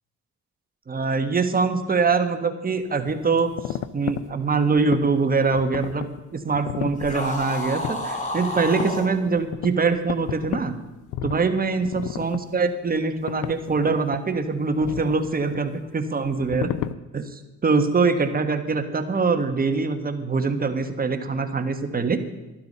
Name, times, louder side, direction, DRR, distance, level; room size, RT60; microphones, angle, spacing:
voice 1, 0.9-6.1 6.3-10.8 11.2-16.7 17.1-22.2, right 4 dB, 30° right, 8 dB, 1.4 m, -23 dB
sound 1, 2.8-2.9 3.1-5.1 5.5-6.2 6.5-8.0 8.7-10.7 11.1-11.5 11.8-12.4 13.0-13.1 13.3-14.2 14.8-15.6 16.2-16.9, left 11 dB, 85° left, 0.6 m, -33 dB
sound 2, 7.0-9.1, left 1 dB, 25° left, 3.1 m, -30 dB
12.5 x 11.5 x 5.5 m, 1.1 s
cardioid pair, 90°, 30 cm